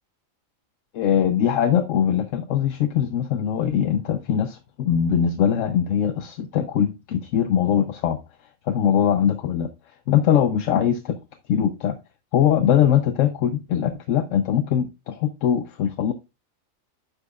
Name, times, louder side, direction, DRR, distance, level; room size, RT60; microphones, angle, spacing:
voice 1, 0.9-8.2 8.7-9.7 10.1-11.2 11.5-12.0 12.3-16.1, left 9 dB, 70° left, 8 dB, 1.0 m, -21 dB
9.9 x 6.2 x 2.3 m, 0.26 s
omnidirectional pair, 1.4 m